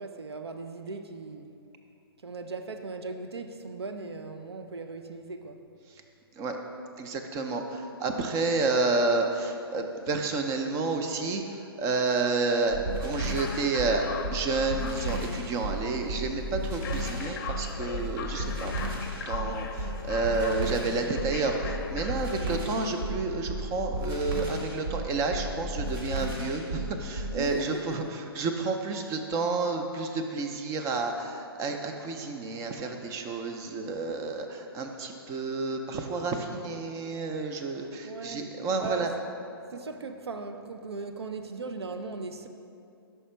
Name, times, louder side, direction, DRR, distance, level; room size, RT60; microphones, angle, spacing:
voice 1, 0.0-1.6 2.2-5.6 27.3-28.0 38.0-39.1 39.7-42.5, right 3 dB, 85° right, 7 dB, 0.5 m, -38 dB
voice 2, 7.0-14.0 14.3-18.7 19.3-39.1, right 3 dB, 25° right, 4 dB, 0.5 m, -30 dB
sound 1, 12.7-27.4, right 1 dB, 65° right, 1.5 m, -33 dB
sound 2, 13.0-22.5, left 6 dB, 45° left, 0.6 m, -40 dB
5.5 x 4.9 x 4.4 m, 2.6 s
hypercardioid pair, 125°, 13 cm